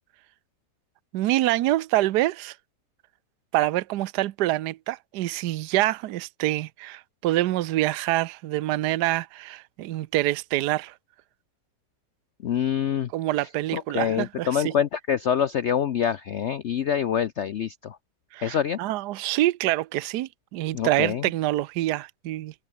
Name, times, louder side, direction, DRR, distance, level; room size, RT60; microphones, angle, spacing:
voice 1, 1.1-2.5 3.5-10.9 13.1-14.7 18.3-22.5, right 16 dB, 75° right, 1.2 m, -26 dB
voice 2, 12.4-13.1 13.4-18.0 18.4-18.8 20.7-21.3, left 9 dB, 65° left, 0.7 m, -26 dB
omnidirectional pair, 1.9 m